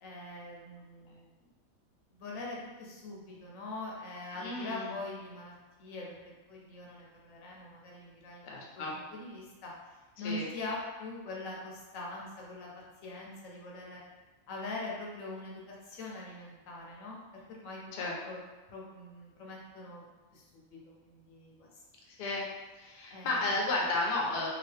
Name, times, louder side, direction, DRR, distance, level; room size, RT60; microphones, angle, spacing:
voice 1, 0.0-1.3 2.1-5.5 5.8-6.1 6.5-8.5 8.8-12.7 13.0-14.0 14.5-17.2 17.5-17.8 18.2-18.4 18.7-20.0 20.3-21.7 23.1-23.7, left 2 dB, 75° left, -2 dB, 1.0 m, -43 dB
voice 2, 4.4-4.9 8.4-8.9 10.2-10.5 17.9-18.1 22.1-22.4 22.8-24.5, left 2 dB, 60° left, -3 dB, 0.8 m, -33 dB
2.9 x 2.3 x 3.2 m, 1.2 s
omnidirectional pair, 1.4 m